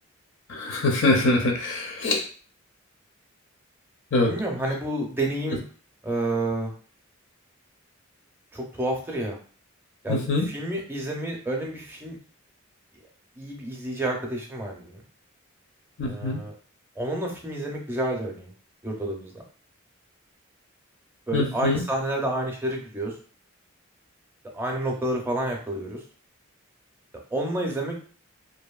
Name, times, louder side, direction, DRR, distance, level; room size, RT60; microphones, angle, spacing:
voice 1, 0.5-2.3 4.1-4.3 10.1-10.5 16.0-16.4 21.3-21.8, left 2 dB, 60° left, 2 dB, 0.5 m, -23 dB
voice 2, 4.2-5.6 6.0-6.7 8.5-9.4 10.0-12.2 13.4-15.0 16.0-16.5 17.0-18.5 18.8-19.3 21.3-23.1 24.5-26.0 27.3-28.0, right 1 dB, 10° right, 0 dB, 0.5 m, -29 dB
2.7 x 2.5 x 2.3 m, 0.42 s
head